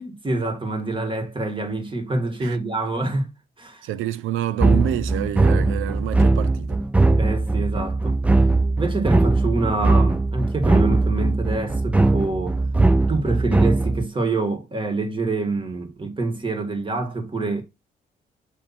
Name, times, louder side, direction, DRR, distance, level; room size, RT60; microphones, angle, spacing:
voice 1, 0.0-3.3 3.6-3.9 7.2-8.2 8.8-12.6 13.1-17.6, right 3 dB, 25° right, 1.8 m, -26 dB
voice 2, 3.8-6.8, right 12 dB, 90° right, 0.5 m, -27 dB
sound 1, 4.6-14.1, right 2 dB, 5° right, 0.3 m, -20 dB
7.2 x 3.1 x 4.2 m
cardioid pair, 90°, 20 cm